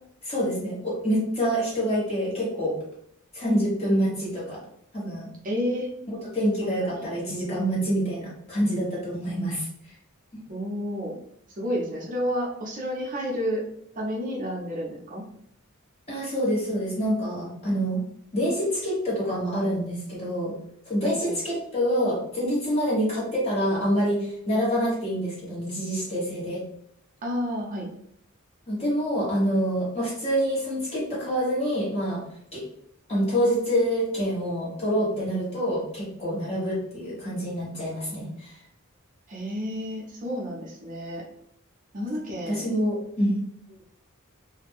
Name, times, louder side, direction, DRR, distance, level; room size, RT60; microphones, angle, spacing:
voice 1, 0.2-2.8 3.3-4.6 4.9-5.3 6.3-9.7 10.3-10.4 16.1-18.0 18.3-20.5 20.9-26.6 28.7-32.2 32.5-32.6 33.1-38.6 42.0-42.1 42.5-43.4, equal, 30° left, -6 dB, 1.1 m, -26 dB
voice 2, 5.4-5.9 6.6-7.0 10.5-11.1 11.5-13.6 13.9-15.2 21.0-21.4 27.2-27.9 39.3-41.2 41.9-42.7, equal, 40° right, -2 dB, 0.6 m, -30 dB
2.4 x 2.1 x 3.4 m, 0.71 s
head